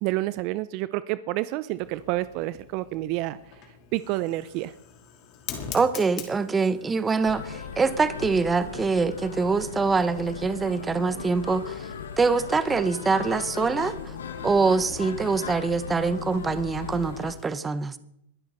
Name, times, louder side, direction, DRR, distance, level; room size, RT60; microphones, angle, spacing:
voice 1, 0.0-3.6 3.9-4.7, right 17 dB, 45° right, 16 dB, 0.5 m, -29 dB
Fire, 1.7-17.4, left 7 dB, 40° left, 2.9 m, -46 dB
voice 2, 5.7-11.8 12.2-14.0 14.4-17.9, right 4 dB, 15° right, 13 dB, 0.9 m, -24 dB
sound 1, 7.2-17.3, left 7 dB, 80° left, 1.5 m, -37 dB
21.5 x 11.5 x 4.0 m, 0.77 s
hypercardioid pair, 125°, 0 cm